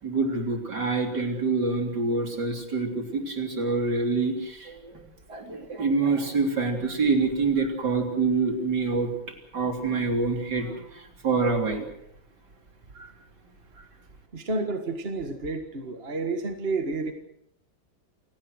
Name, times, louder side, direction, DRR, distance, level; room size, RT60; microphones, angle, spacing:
voice 1, 0.0-4.9 5.3-9.1 9.5-11.8 13.0-13.1, right 4 dB, 55° right, 3 dB, 4.1 m, -26 dB
voice 2, 14.3-17.1, right 3 dB, 30° right, 6 dB, 1.8 m, -30 dB
28.5 x 18.0 x 6.4 m, 0.73 s
omnidirectional pair, 2.1 m